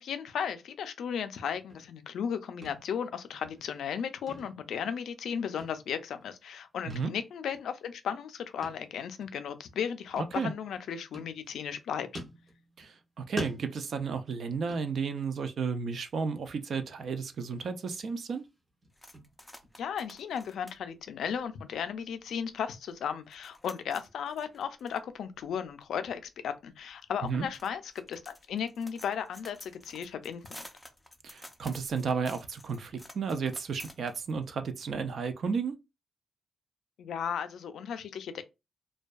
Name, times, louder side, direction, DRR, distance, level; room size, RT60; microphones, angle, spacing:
voice 1, 0.0-12.1 19.8-27.8 28.1-30.5 37.0-38.4, left 7 dB, 85° left, 0.4 m, -35 dB
sound 1, 1.5-2.3 2.6-3.1 3.3-3.9 4.3-5.3 5.6-6.3 6.9-7.2 7.5-7.6 8.6-8.9 9.2-9.3 10.2-10.8 11.1-11.8 12.1-13.0 13.4-15.4 15.7-16.0 16.4-16.5 17.0-17.7 18.0-20.6, equal, 25° right, 1.0 m, -46 dB
voice 2, 10.2-10.5 12.8-18.4 27.2-27.5 31.2-35.7, right 5 dB, 60° right, 0.4 m, -33 dB
sound 2, 18.9-22.1 22.6-22.7 22.9-34.6, left 1 dB, 5° left, 0.4 m, -52 dB
2.5 x 2.2 x 2.3 m
cardioid pair, 120°, 0 cm